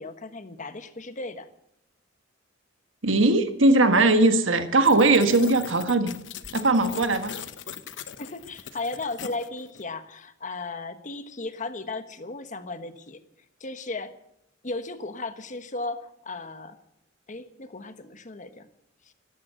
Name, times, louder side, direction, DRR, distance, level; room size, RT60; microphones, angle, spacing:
voice 1, 0.0-1.5 8.2-13.2 13.6-14.1 14.6-16.8 17.3-18.7 19.1-19.2, left 3 dB, 40° left, 10 dB, 1.3 m, -35 dB
voice 2, 3.0-6.1 6.5-7.4, right 2 dB, 85° right, 8 dB, 1.5 m, -20 dB
sound 1, 4.8-9.8, left 7 dB, 70° left, 0.9 m, -40 dB
13.0 x 13.0 x 8.1 m, 0.80 s
head